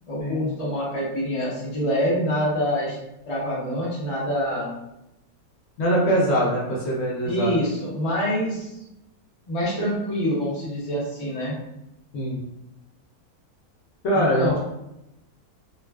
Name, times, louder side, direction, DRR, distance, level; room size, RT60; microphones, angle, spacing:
voice 1, 0.1-3.0 3.3-4.7 7.2-8.8 9.5-11.6 14.1-14.6, equal, 40° left, -5 dB, 0.4 m, -26 dB
voice 2, 5.8-7.5 12.1-12.4 14.0-14.5, right 1 dB, 60° left, -5 dB, 0.8 m, -22 dB
2.4 x 2.4 x 2.2 m, 0.88 s
omnidirectional pair, 1.6 m